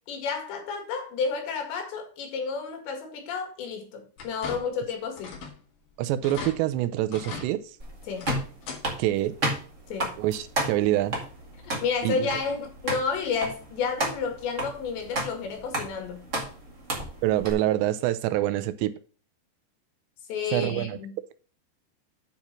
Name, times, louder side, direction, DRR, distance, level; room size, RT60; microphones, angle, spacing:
voice 1, 0.1-5.4 8.1-8.3 9.9-10.2 11.6-16.3 20.3-21.1, left 5 dB, 80° left, 4.2 m, -31 dB
sound 1, 4.2-4.9 5.2-5.6 5.9-6.0 6.2-6.5 7.1-7.5 8.1-8.8 9.2-9.3 10.7-10.8 11.3-11.4, left 5 dB, 60° left, 3.6 m, -37 dB
voice 2, 6.0-7.8 9.0-9.4 10.2-11.2 12.0-12.3 17.2-18.9 20.5-21.0, right 14 dB, 85° right, 2.8 m, -26 dB
sound 2, 7.8-17.5, right 1 dB, 45° right, 0.9 m, -33 dB
9.0 x 4.2 x 5.9 m
omnidirectional pair, 5.0 m